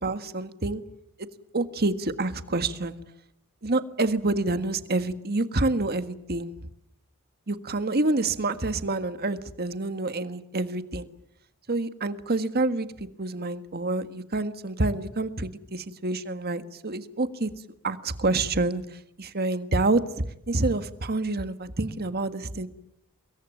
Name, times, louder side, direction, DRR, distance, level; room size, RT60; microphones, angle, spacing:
voice 1, 0.0-0.8 1.2-1.3 1.5-3.0 3.6-6.5 7.5-11.1 11.7-12.9 13.2-17.5 17.8-22.7, right 2 dB, 45° right, 10 dB, 1.6 m, -27 dB
25.5 x 22.0 x 9.1 m, 0.77 s
head